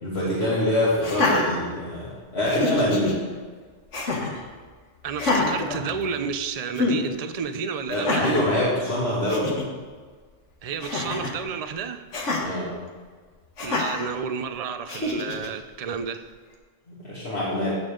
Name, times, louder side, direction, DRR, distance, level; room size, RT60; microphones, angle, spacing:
voice 1, 0.0-3.2 7.9-9.5 12.4-12.7 16.9-17.8, left 1 dB, 60° left, -10 dB, 2.8 m, -25 dB
Laughter, 1.0-2.1 2.5-3.1 3.9-4.4 5.1-6.4 6.8-7.0 7.9-8.5 9.0-9.1 9.3-9.7 10.8-11.4 12.1-12.4 13.6-14.1 14.9-15.5, left 3 dB, 75° left, 1.7 m, -26 dB
voice 2, 5.0-8.3 10.6-12.1 13.6-16.2, right 6 dB, 40° right, 9 dB, 0.6 m, -31 dB
16.0 x 7.0 x 3.8 m, 1.5 s
omnidirectional pair, 1.2 m